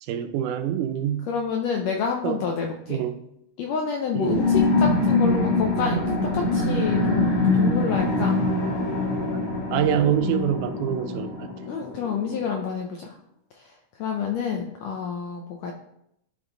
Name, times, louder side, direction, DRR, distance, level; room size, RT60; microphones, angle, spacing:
voice 1, 0.0-1.3 2.2-2.4 2.9-3.3 4.1-4.5 9.7-11.5, right 10 dB, 85° right, 2.1 m, -25 dB
voice 2, 1.3-3.0 3.6-8.4 11.7-13.2 14.0-15.7, left 6 dB, 80° left, 1.5 m, -28 dB
sound 1, 4.2-12.4, left 2 dB, 45° left, 1.6 m, -24 dB
10.5 x 3.6 x 3.8 m
omnidirectional pair, 3.7 m